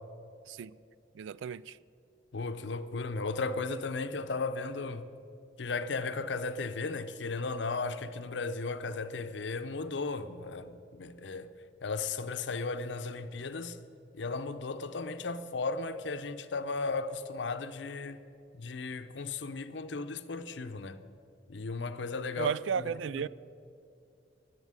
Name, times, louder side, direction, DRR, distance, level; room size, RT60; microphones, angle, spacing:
voice 1, 1.2-1.8 22.4-23.3, right 7 dB, 80° right, 0.3 m, -34 dB
voice 2, 2.3-5.0 5.6-11.5 11.8-13.8 14.1-18.2 18.5-21.0 21.5-23.3, left 3 dB, 70° left, 0.7 m, -35 dB
11.0 x 8.4 x 9.7 m
head